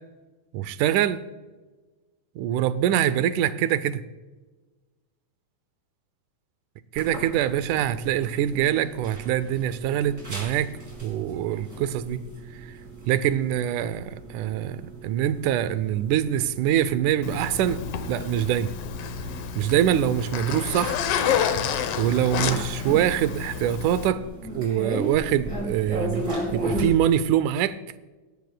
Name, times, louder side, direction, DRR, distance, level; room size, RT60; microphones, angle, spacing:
voice 1, 0.5-1.3 2.4-4.0 6.9-12.3 13.1-17.8 18.1-18.7 19.6-21.0 22.0-24.2 24.5-27.8, right 11 dB, 80° right, 2.1 m, -24 dB
sound 1, 7.0-26.9, right 1 dB, 25° right, 5.0 m, -37 dB
Zipper (clothing), 17.2-24.1, left 8 dB, 75° left, 1.4 m, -29 dB
19.0 x 14.0 x 2.2 m
omnidirectional pair, 3.6 m